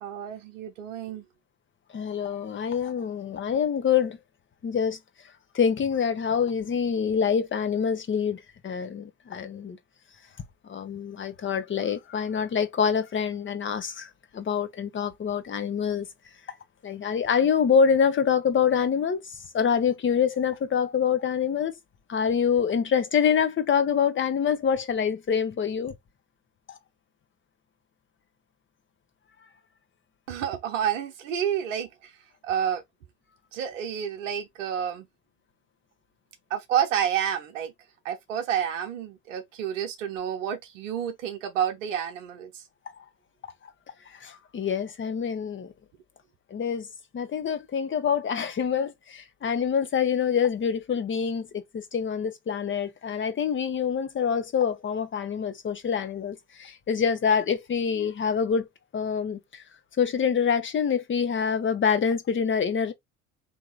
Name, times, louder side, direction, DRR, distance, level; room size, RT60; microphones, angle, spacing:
voice 1, 0.0-1.2 30.3-32.1 32.4-32.8 33.5-35.1 36.5-37.7 38.0-42.6, right 9 dB, 75° right, 0.8 m, -29 dB
voice 2, 1.9-4.2 4.6-5.0 5.5-9.8 10.6-16.1 16.8-21.7 22.1-25.9 26.7-26.8 44.1-45.7 46.5-46.9 47.1-58.7 58.9-59.6 60.0-62.9, left 7 dB, 30° left, 1.0 m, -26 dB
3.5 x 2.8 x 3.9 m
hypercardioid pair, 65°, 38 cm